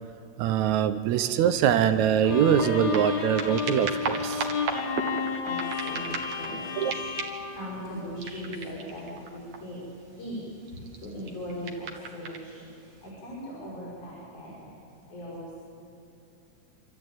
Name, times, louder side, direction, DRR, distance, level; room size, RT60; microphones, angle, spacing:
voice 1, 0.4-4.5 6.8-6.9, right 10 dB, 75° right, 11 dB, 2.0 m, -23 dB
sound 1, 1.1-1.2 1.6-6.5 6.8-7.6 8.2-9.8 10.6-12.5 13.1-13.2, right 4 dB, 55° right, 2.4 m, -36 dB
Bowed string instrument, 2.2-8.5, left 5 dB, 55° left, 1.1 m, -32 dB
voice 2, 5.8-6.9 7.5-9.8 10.2-10.4 11.0-12.7 13.0-14.7 15.1-15.6, equal, 80° left, -8 dB, 7.5 m, -39 dB
27.0 x 13.0 x 9.1 m, 2.6 s
omnidirectional pair, 3.6 m